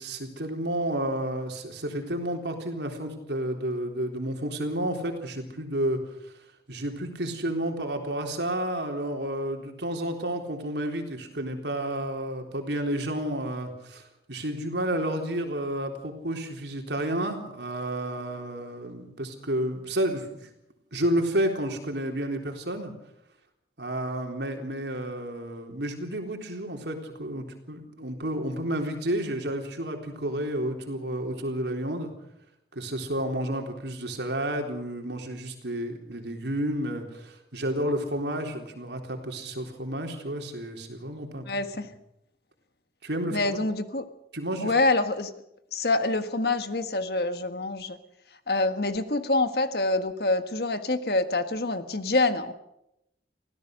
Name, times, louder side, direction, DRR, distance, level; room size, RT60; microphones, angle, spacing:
voice 1, 0.0-6.0 6.7-20.4 20.9-22.9 23.8-32.1 32.8-41.5 43.0-43.6 44.3-44.7, right 1 dB, 75° right, 3 dB, 3.8 m, -31 dB
voice 2, 41.5-41.9 43.3-44.0 44.6-45.3 45.7-48.0 48.5-52.5, left 2 dB, 60° left, 9 dB, 1.5 m, -26 dB
24.5 x 16.5 x 6.6 m, 0.82 s
head